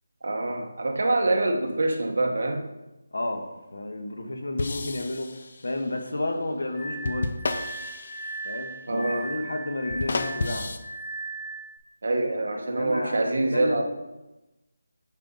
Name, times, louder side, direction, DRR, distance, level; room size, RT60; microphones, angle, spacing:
voice 1, 0.2-2.7 8.9-9.3 12.0-13.8, right 2 dB, 50° right, 3 dB, 1.2 m, -25 dB
voice 2, 3.1-7.5 8.4-10.8 12.3-13.8, left 2 dB, 75° left, 4 dB, 1.4 m, -32 dB
sound 1, 4.6-5.9 7.1-8.7 9.9-10.8, left 3 dB, 35° left, 0.6 m, -32 dB
Glass, 6.7-11.8, right 2 dB, 30° right, 2.1 m, -37 dB
8.7 x 5.7 x 4.1 m, 1.0 s
figure-of-eight pair, 175°, 0 cm